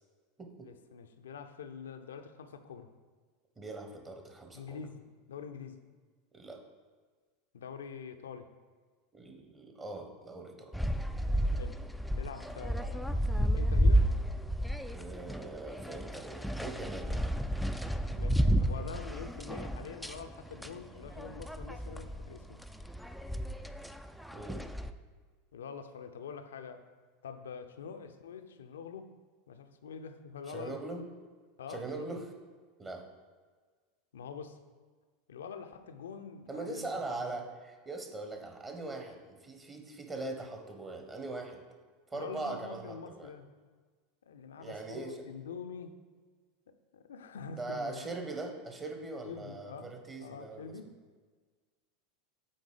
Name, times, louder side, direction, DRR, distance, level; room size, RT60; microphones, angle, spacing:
voice 1, 0.6-2.9 4.5-5.8 7.5-8.5 11.5-11.8 12.1-14.1 18.2-22.6 25.5-26.9 27.2-29.1 29.5-31.0 31.6-32.2 34.1-34.6 35.3-37.2 42.1-43.5 44.2-46.0 46.7-48.1 49.3-49.9 50.2-50.9, left 6 dB, 70° left, 8 dB, 0.5 m, -45 dB
voice 2, 3.6-4.8 6.3-6.6 9.1-10.7 14.9-17.3 24.3-24.6 30.5-31.0 31.7-32.2 32.8-33.0 36.5-41.6 42.1-43.3 44.6-45.2 47.6-50.7, right 2 dB, 20° right, 4 dB, 1.1 m, -41 dB
sound 1, 10.7-24.9, equal, ahead, 0.3 m, -32 dB
8.6 x 3.9 x 4.9 m, 1.5 s
figure-of-eight pair, 80°, 0 cm